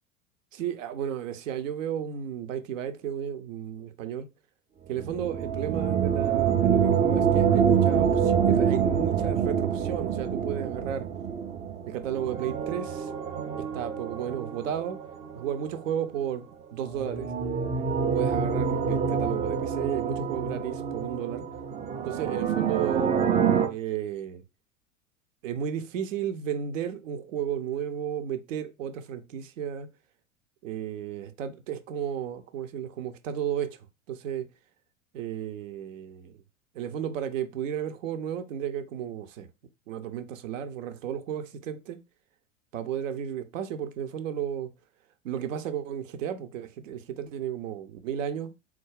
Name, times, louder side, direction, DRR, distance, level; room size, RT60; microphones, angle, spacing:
voice 1, 0.5-4.3 4.9-11.1 11.9-13.1 13.7-15.0 15.3-17.3 18.1-21.4 22.0-23.2 23.7-24.4 25.4-29.9 30.6-33.8 34.1-34.5 35.1-36.3 36.7-39.5 39.9-42.0 42.7-44.7 45.2-48.5, right 9 dB, 70° right, 0.7 m, -33 dB
sound 1, 5.0-15.7 16.9-23.7, right 7 dB, 15° right, 0.4 m, -26 dB
3.9 x 2.4 x 4.7 m
hypercardioid pair, 90°, 40 cm